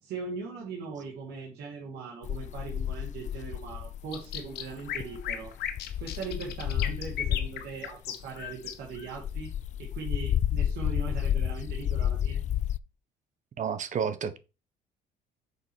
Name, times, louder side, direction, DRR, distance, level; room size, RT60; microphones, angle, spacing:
voice 1, 0.0-5.5 6.0-9.5 9.8-12.5, right 5 dB, 75° right, 2.4 m, -40 dB
sound 1, 2.2-7.7 8.2-12.8, left 10 dB, 45° left, 0.4 m, -31 dB
sound 2, 4.1-9.1, left 9 dB, 70° left, 1.5 m, -36 dB
voice 2, 13.6-14.4, right 7 dB, 45° right, 1.2 m, -30 dB
6.7 x 4.9 x 6.3 m
cardioid pair, 110°, 17 cm